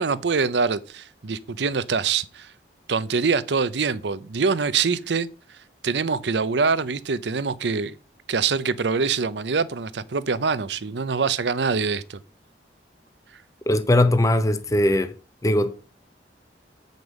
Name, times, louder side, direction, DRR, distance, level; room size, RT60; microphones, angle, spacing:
voice 1, 0.0-2.5 2.9-5.3 5.8-7.9 8.3-12.2, right 5 dB, 75° right, 0.6 m, -24 dB
voice 2, 13.7-15.1 15.4-15.7, left 1 dB, 20° left, 0.6 m, -20 dB
7.9 x 5.3 x 6.4 m
head